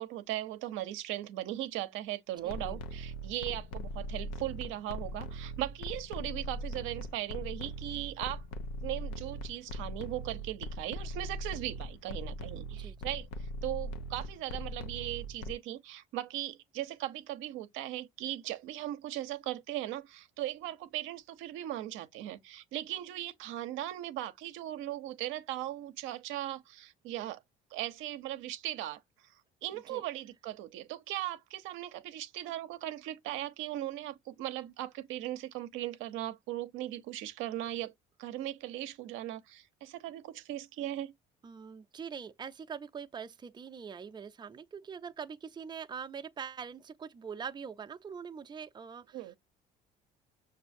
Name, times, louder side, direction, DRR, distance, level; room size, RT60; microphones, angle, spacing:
voice 1, 0.0-8.4 8.8-13.3 13.6-27.4 27.7-29.0 29.6-37.9 38.2-41.1 49.1-49.3, right 14 dB, 75° right, 0.6 m, -38 dB
sound 1, 2.4-15.5, equal, 90° left, 0.6 m, -40 dB
voice 2, 2.4-2.8 12.7-13.1 29.9-30.0 41.4-49.4, right 6 dB, 20° right, 0.5 m, -43 dB
6.1 x 2.6 x 2.5 m
supercardioid pair, 70°, 21 cm